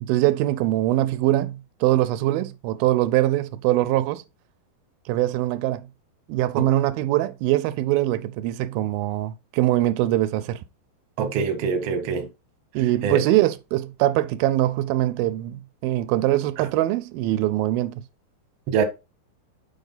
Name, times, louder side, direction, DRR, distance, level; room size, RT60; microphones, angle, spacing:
voice 1, 0.0-4.2 5.1-5.9 6.3-10.6 12.7-18.0, right 15 dB, 85° right, 2.4 m, -22 dB
voice 2, 11.2-12.3 13.0-13.2 18.7-18.8, right 5 dB, 65° right, 1.5 m, -24 dB
7.3 x 5.4 x 3.9 m
omnidirectional pair, 4.2 m